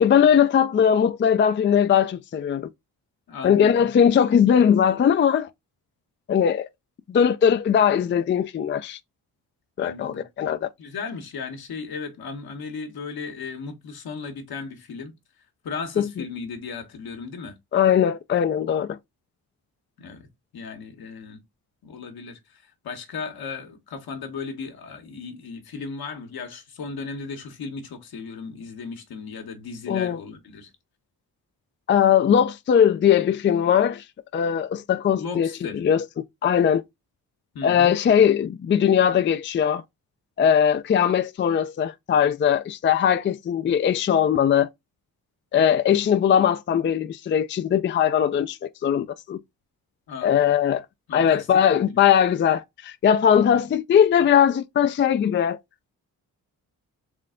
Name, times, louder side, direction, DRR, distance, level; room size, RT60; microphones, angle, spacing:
voice 1, 0.0-2.7 3.4-5.5 6.3-6.7 7.1-9.0 9.8-10.7 16.0-16.1 17.7-19.0 29.9-30.2 31.9-34.0 34.3-36.1 36.4-36.8 37.6-39.8 40.4-44.7 45.5-49.4 50.2-50.9 51.1-55.6, left 8 dB, 30° left, 0.4 m, -20 dB
voice 2, 3.3-3.9 9.8-10.2 10.8-15.1 15.6-17.5 20.0-20.3 20.5-21.4 21.8-30.7 35.1-35.8 37.5-37.9 50.1-50.3 51.1-51.5 51.9-52.0 53.5-53.7, left 5 dB, 70° left, 1.2 m, -36 dB
3.6 x 3.2 x 3.7 m
cardioid pair, 80°, 38 cm